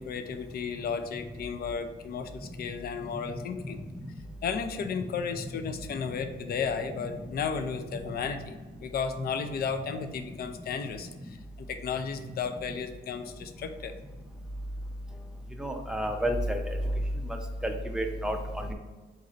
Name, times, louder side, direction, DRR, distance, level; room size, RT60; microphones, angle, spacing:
voice 1, 0.0-3.8 4.4-8.6 8.8-14.0, left 6 dB, 50° left, 8 dB, 0.5 m, -34 dB
voice 2, 15.6-16.6 17.6-18.7, equal, 5° right, 4 dB, 0.5 m, -30 dB
4.0 x 2.5 x 4.2 m, 1.3 s
cardioid pair, 90°, 20 cm